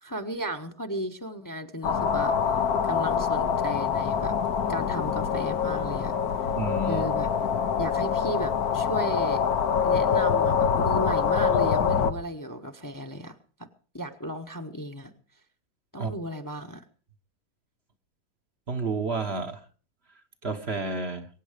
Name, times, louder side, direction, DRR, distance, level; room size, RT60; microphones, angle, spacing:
voice 1, 0.0-2.6 2.8-4.3 4.7-6.1 6.9-7.3 7.8-9.4 9.8-13.4 13.9-15.1 15.9-16.8, right 1 dB, 15° left, 0.9 m, -34 dB
sound 1, 1.8-12.1, left 7 dB, 75° left, 1.5 m, -25 dB
voice 2, 6.5-7.0 16.0-16.1 18.7-19.6 20.4-21.3, right 3 dB, 45° right, 1.2 m, -30 dB
23.0 x 9.3 x 5.0 m
omnidirectional pair, 1.6 m